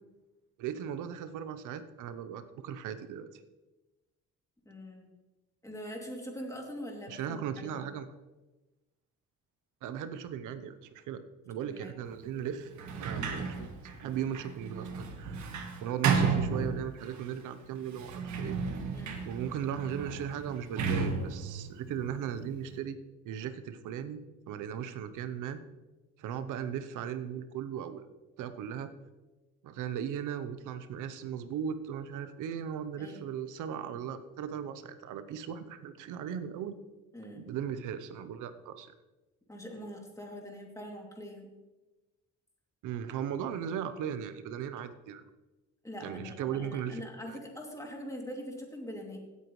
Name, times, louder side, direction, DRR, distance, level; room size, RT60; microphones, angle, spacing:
voice 1, 0.6-3.3 7.1-8.1 9.8-12.7 13.0-13.7 14.0-18.6 19.3-23.0 23.2-25.6 26.2-28.0 28.4-28.9 29.6-36.8 37.3-38.9 42.8-45.2 46.0-47.0 47.3-47.4, right 8 dB, 90° right, 11 dB, 0.8 m, -37 dB
voice 2, 4.6-5.1 5.6-7.8 11.7-11.9 13.1-13.4 18.9-19.2 33.0-33.3 37.1-37.5 39.5-41.5 45.8-49.2, equal, 10° left, 0 dB, 2.7 m, -43 dB
Sliding door, 12.7-17.2 17.9-22.7, right 5 dB, 70° right, 1.6 m, -34 dB
16.5 x 8.2 x 3.2 m, 1.1 s
cardioid pair, 90°, 30 cm